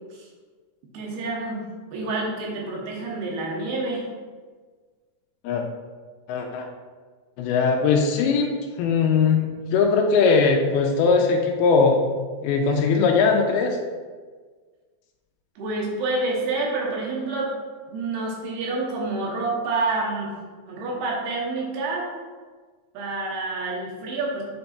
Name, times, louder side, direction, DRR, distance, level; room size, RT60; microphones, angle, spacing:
voice 1, 0.9-1.6 1.9-4.0 15.6-17.5 17.9-20.3 20.6-22.1 22.9-24.5, right 3 dB, 75° right, -2 dB, 3.1 m, -28 dB
voice 2, 6.3-6.7 7.4-8.5 8.8-12.0 12.4-13.8, left 5 dB, 85° left, 2 dB, 2.5 m, -20 dB
8.6 x 3.4 x 4.1 m, 1.5 s
omnidirectional pair, 4.6 m